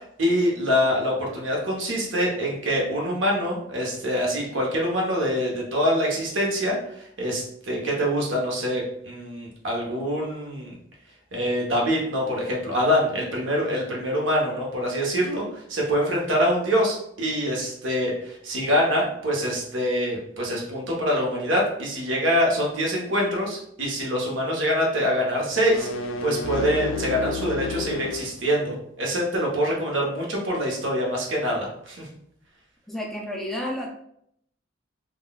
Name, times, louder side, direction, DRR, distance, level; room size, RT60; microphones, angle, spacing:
voice 1, 0.2-10.7 11.3-32.1, equal, 75° right, -1 dB, 0.9 m, -25 dB
sound 1, 25.5-28.3, left 4 dB, 80° left, 0.4 m, -31 dB
voice 2, 32.9-33.9, left 1 dB, ahead, -2 dB, 0.3 m, -31 dB
3.7 x 2.3 x 2.3 m, 0.71 s
head